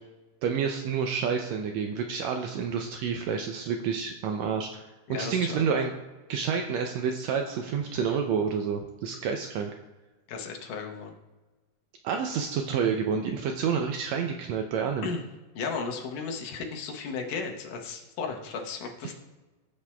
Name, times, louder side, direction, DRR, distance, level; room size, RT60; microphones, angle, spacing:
voice 1, 0.4-4.8 5.1-5.9 6.3-9.7 12.0-15.1 19.0-19.1, right 6 dB, 90° right, 4 dB, 1.5 m, -29 dB
voice 2, 5.1-5.6 10.3-11.1 15.0-15.2 15.6-19.1, left 5 dB, 80° left, 1 dB, 2.6 m, -35 dB
15.5 x 8.3 x 2.2 m, 1.2 s
omnidirectional pair, 3.8 m